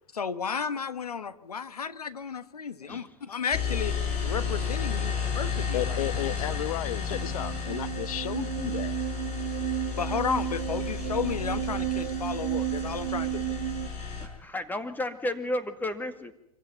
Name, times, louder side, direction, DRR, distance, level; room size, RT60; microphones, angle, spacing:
voice 1, 0.1-3.9 4.2-6.1 9.9-13.4, left 6 dB, 90° left, 1.3 m, -33 dB
sound 1, 3.5-14.3, left 6 dB, 40° left, 6.6 m, -32 dB
voice 2, 5.7-8.9, left 12 dB, 70° left, 1.2 m, -33 dB
sound 2, 7.1-13.9, right 16 dB, 55° right, 1.1 m, -33 dB
voice 3, 14.2-16.3, left 1 dB, 10° left, 2.2 m, -33 dB
25.0 x 15.5 x 9.3 m
hypercardioid pair, 100°, 19 cm